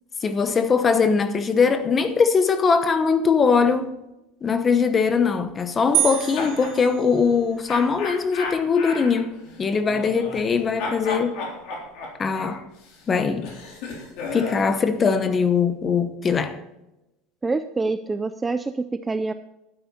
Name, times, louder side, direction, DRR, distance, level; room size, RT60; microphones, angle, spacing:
voice 1, 0.2-3.9 4.4-11.5 12.2-12.6 13.1-13.5 14.3-16.6, left 5 dB, 20° left, 0.9 m, -21 dB
sound 1, 5.9-6.8 7.7-10.5 10.8-14.7, left 3 dB, 55° left, 3.8 m, -34 dB
sound 2, 5.9-7.7, right 13 dB, 45° right, 0.7 m, -27 dB
voice 2, 17.4-19.3, right 3 dB, 10° right, 0.4 m, -26 dB
12.0 x 9.8 x 4.2 m
cardioid pair, 170°, 0 cm